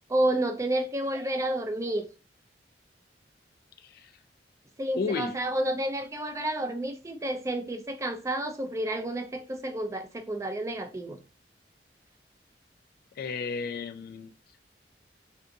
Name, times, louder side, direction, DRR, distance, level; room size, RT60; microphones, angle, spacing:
voice 1, 0.1-2.1 4.8-11.2, right 1 dB, 15° right, 0.4 m, -30 dB
voice 2, 3.8-4.1 5.0-5.3 13.2-14.3, left 5 dB, 55° left, 0.3 m, -33 dB
3.4 x 2.6 x 2.6 m
head